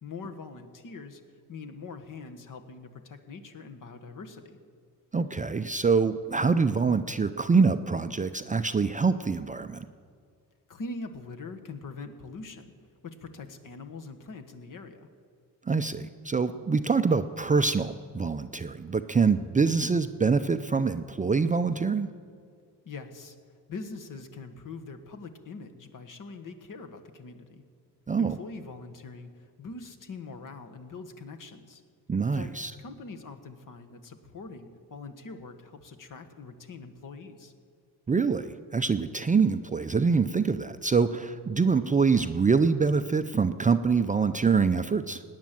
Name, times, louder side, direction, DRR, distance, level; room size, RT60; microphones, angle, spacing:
voice 1, 0.0-1.2 1.5-4.6 10.7-12.7 13.0-15.1 22.8-23.4 23.7-27.6 28.2-31.8 32.3-32.5 32.8-37.5, left 3 dB, 55° left, 6 dB, 1.5 m, -43 dB
voice 2, 5.1-9.9 15.7-22.1 28.1-28.4 32.1-32.7 38.1-45.2, right 5 dB, 20° right, 9 dB, 0.5 m, -25 dB
18.0 x 9.6 x 7.6 m, 2.2 s
cardioid pair, 100°, 39 cm